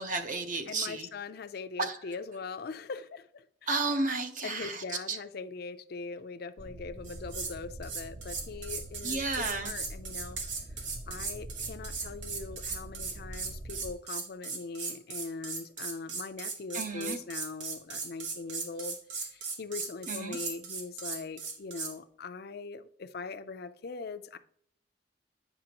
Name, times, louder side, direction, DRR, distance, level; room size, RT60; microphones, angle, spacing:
voice 1, 0.0-1.1 1.8-2.0 3.7-5.2 9.0-9.7 16.7-17.2 20.1-20.4, right 3 dB, 45° right, 7 dB, 0.8 m, -32 dB
voice 2, 0.7-3.7 4.4-10.4 11.1-24.4, left 4 dB, 55° left, 11 dB, 0.5 m, -41 dB
sound 1, 6.6-13.9, right 1 dB, 20° right, 0.3 m, -45 dB
sound 2, 7.0-7.6 7.8-21.9, right 4 dB, 85° right, 1.2 m, -38 dB
8.9 x 5.9 x 2.9 m, 0.62 s
head